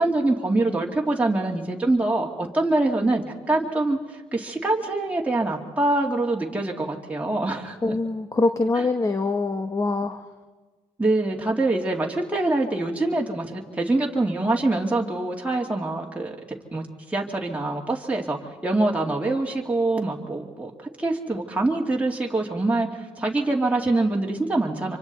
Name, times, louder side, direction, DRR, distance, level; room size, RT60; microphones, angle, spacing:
voice 1, 0.0-7.8 11.0-16.4 16.7-18.4 18.6-20.7 21.0-25.0, right 2 dB, 10° right, -1 dB, 2.4 m, -24 dB
voice 2, 7.8-10.2, left 3 dB, 25° left, 7 dB, 1.1 m, -24 dB
25.5 x 25.0 x 4.2 m, 1.4 s
supercardioid pair, 70°, 13 cm